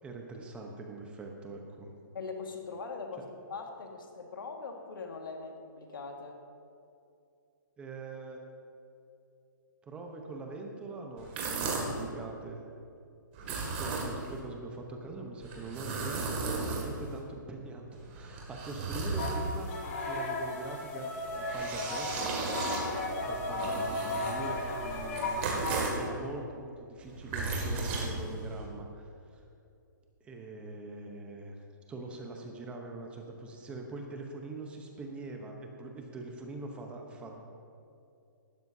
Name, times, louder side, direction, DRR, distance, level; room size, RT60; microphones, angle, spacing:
voice 1, 0.0-1.9 7.8-8.4 9.9-12.6 13.5-22.3 23.2-29.4 30.2-31.6 31.9-37.4, right 3 dB, 10° right, 2 dB, 0.9 m, -43 dB
voice 2, 2.1-6.4 13.4-13.7, left 4 dB, 80° left, 3 dB, 1.7 m, -41 dB
sound 1, 11.2-12.0 13.3-14.4 15.4-17.2 17.9-19.8 21.2-26.1 27.0-28.7, right 3 dB, 35° right, 2.2 m, -35 dB
sound 2, 19.2-25.9, left 2 dB, 40° left, 2.0 m, -35 dB
18.0 x 12.5 x 2.7 m, 2.6 s
hypercardioid pair, 160°, 11 cm